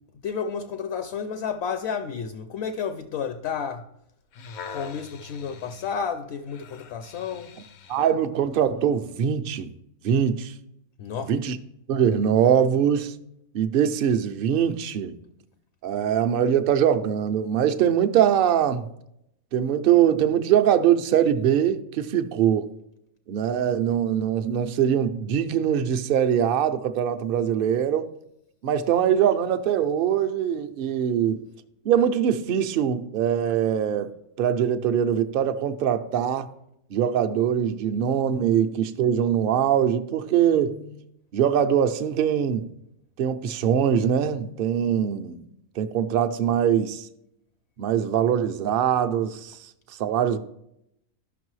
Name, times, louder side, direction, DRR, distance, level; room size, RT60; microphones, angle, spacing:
voice 1, 0.2-3.9 4.7-7.5 11.0-11.4, left 6 dB, 65° left, 0.7 m, -31 dB
sound 1, 4.1-8.2 8.8-9.0, left 6 dB, 85° left, 1.1 m, -44 dB
voice 2, 7.9-9.7 10.0-10.5 11.2-11.6 11.9-13.2 13.5-15.2 15.8-18.8 19.5-22.7 23.3-28.1 28.6-31.4 31.8-34.1 34.4-36.5 36.9-41.0 41.3-42.7 43.2-45.4 45.8-47.1 47.8-49.6 50.0-50.4, right 9 dB, 60° right, 0.5 m, -22 dB
13.0 x 6.0 x 3.1 m
omnidirectional pair, 1.5 m